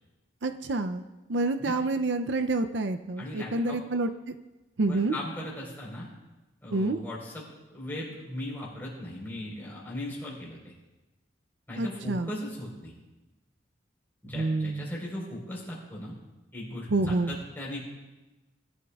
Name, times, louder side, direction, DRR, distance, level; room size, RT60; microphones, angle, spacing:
voice 1, 0.4-1.0 1.3-4.1 4.8-5.2 6.7-7.0 11.8-12.3 14.3-14.9 16.9-17.3, right 2 dB, 65° right, 8 dB, 0.5 m, -28 dB
voice 2, 3.2-3.8 4.9-6.1 6.6-10.7 11.7-12.9 14.2-16.2 16.5-17.8, left 1 dB, 10° left, -4 dB, 4.1 m, -38 dB
21.0 x 12.0 x 2.4 m, 1.1 s
head